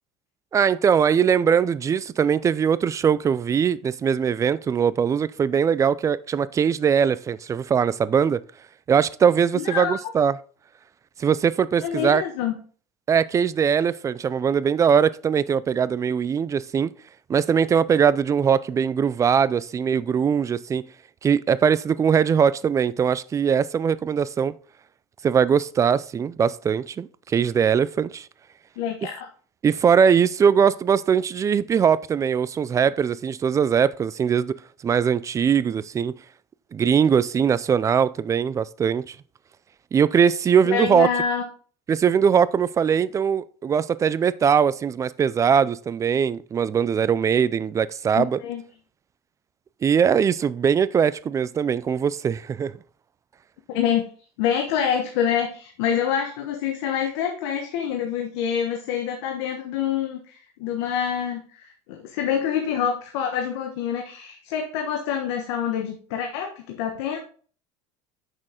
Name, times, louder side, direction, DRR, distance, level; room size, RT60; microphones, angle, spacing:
voice 1, 0.5-8.4 8.9-10.4 11.2-12.2 13.1-16.9 17.3-20.8 21.2-24.5 25.2-28.3 29.6-34.5 34.8-36.1 36.7-39.2 39.9-41.1 41.9-48.4 49.8-52.7, right 7 dB, 20° right, 0.4 m, -21 dB
voice 2, 9.5-10.0 11.8-12.6 28.8-29.3 40.6-41.4 48.1-48.6 53.7-54.1 54.4-67.2, left 8 dB, 80° left, 1.2 m, -26 dB
8.7 x 6.3 x 3.8 m
supercardioid pair, 125°, 14 cm